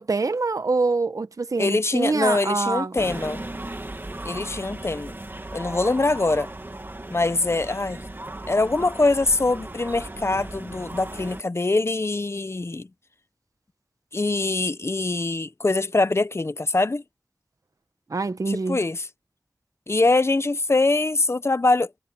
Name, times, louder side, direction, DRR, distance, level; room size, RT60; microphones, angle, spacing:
voice 1, 0.0-3.0 18.1-18.8, right 3 dB, 80° right, 1.0 m, -25 dB
voice 2, 1.6-3.5 4.2-5.2 5.5-6.5 7.1-8.0 8.5-12.9 14.1-17.0 18.5-19.1 19.9-21.9, left 2 dB, 50° left, 0.8 m, -23 dB
sound 1, 3.0-11.4, right 2 dB, 40° right, 1.9 m, -36 dB
wide cardioid pair, 55°, 6 cm